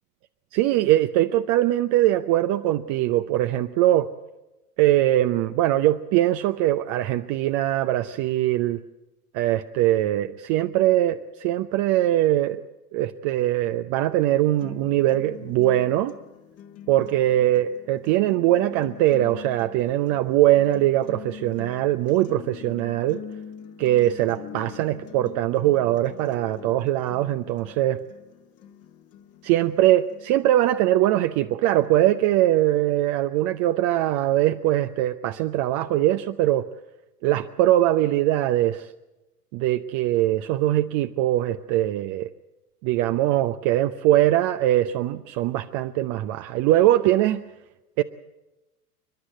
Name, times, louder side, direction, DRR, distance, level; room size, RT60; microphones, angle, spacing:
voice 1, 0.5-4.1 4.8-8.8 9.3-12.6 12.9-16.1 16.9-23.2 23.8-28.0 29.4-36.7 37.2-38.9 39.5-42.3 42.8-47.4 48.0-48.1, right 14 dB, 40° right, 10 dB, 0.7 m, -22 dB
sound 1, 14.3-30.3, left 9 dB, 30° left, 1.4 m, -44 dB
29.5 x 11.5 x 9.2 m, 1.0 s
figure-of-eight pair, 85°, 47 cm